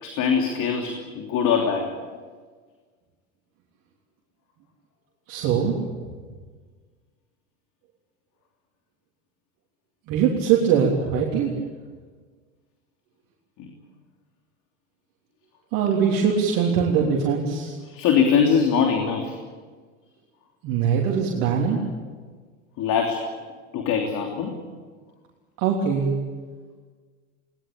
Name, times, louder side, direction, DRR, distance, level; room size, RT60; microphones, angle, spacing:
voice 1, 0.0-2.0 13.6-13.7 17.8-19.4 22.8-23.3 23.7-24.6, left 6 dB, 45° left, 2 dB, 3.3 m, -22 dB
voice 2, 5.3-5.8 10.1-11.5 15.7-17.8 20.6-21.8 25.6-26.1, right 7 dB, 50° right, -2 dB, 3.5 m, -22 dB
21.0 x 20.0 x 8.6 m, 1.5 s
hypercardioid pair, 90°, 42 cm